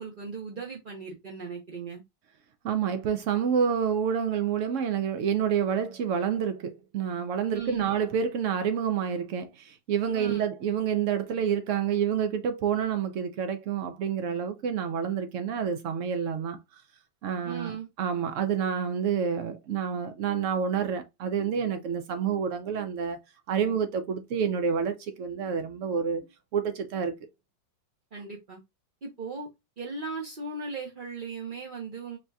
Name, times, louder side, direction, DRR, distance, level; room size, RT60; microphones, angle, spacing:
voice 1, 0.0-2.0 7.5-7.9 10.1-10.4 17.4-17.9 28.1-28.6 29.0-29.5 29.8-32.2, right 4 dB, 50° right, 0.6 m, -37 dB
voice 2, 2.6-16.8 17.2-23.2 23.5-27.1, right 7 dB, 85° right, 0.6 m, -28 dB
5.5 x 2.7 x 2.3 m
omnidirectional pair, 2.0 m